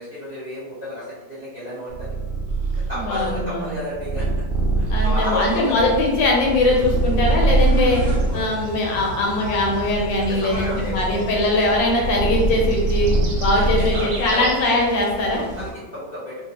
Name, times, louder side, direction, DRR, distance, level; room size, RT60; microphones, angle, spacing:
voice 1, 0.0-2.1 2.9-4.3 4.8-5.8 8.3-8.5 10.3-11.2 13.5-14.6 15.3-16.4, equal, 30° right, -12 dB, 0.8 m, -32 dB
Purr, 1.9-8.4 9.1-14.3, right 2 dB, 85° right, 0.6 m, -23 dB
voice 2, 3.1-3.7 4.9-8.0 8.3-13.1 13.4-15.4, left 2 dB, 75° left, -1 dB, 1.3 m, -21 dB
sound 1, 5.2-15.7, right 1 dB, 70° right, 1.1 m, -34 dB
3.0 x 2.6 x 2.8 m, 1.2 s
omnidirectional pair, 2.1 m